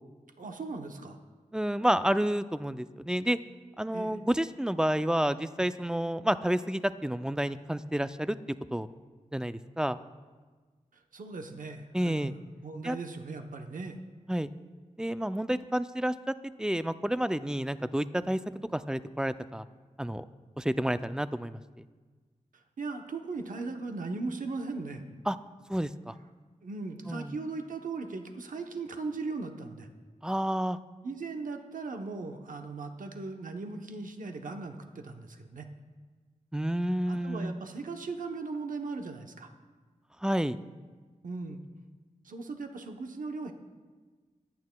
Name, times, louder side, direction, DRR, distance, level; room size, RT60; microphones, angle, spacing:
voice 1, 0.4-1.2 3.9-4.2 10.9-12.4 12.6-14.0 22.5-25.0 26.6-29.9 31.0-35.7 37.1-39.5 41.2-41.6 42.2-43.5, right 3 dB, 85° right, 5 dB, 0.8 m, -38 dB
voice 2, 1.5-3.4 3.8-8.4 8.7-8.9 9.3-10.0 11.9-12.3 12.8-13.0 14.3-14.5 15.0-18.4 18.7-19.7 20.0-20.2 20.6-21.8 25.3-25.4 25.7-26.1 27.1-27.4 30.2-30.8 36.5-37.6 40.2-40.6, right 1 dB, 5° right, 13 dB, 0.3 m, -30 dB
22.5 x 9.4 x 2.2 m, 1.4 s
wide cardioid pair, 95°, 13 cm